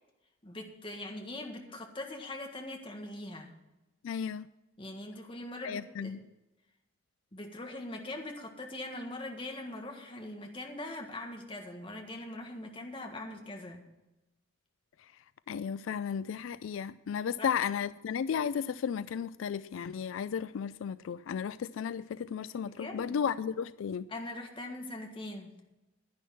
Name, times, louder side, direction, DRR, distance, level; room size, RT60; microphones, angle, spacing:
voice 1, 0.4-3.5 4.8-6.2 7.3-13.8 17.4-17.5 22.6-23.2 24.1-25.5, left 1 dB, 25° left, 2 dB, 1.6 m, -42 dB
voice 2, 4.0-4.5 5.6-6.2 15.5-24.1, left 7 dB, 75° left, 16 dB, 0.3 m, -34 dB
10.5 x 10.0 x 5.8 m, 1.0 s
head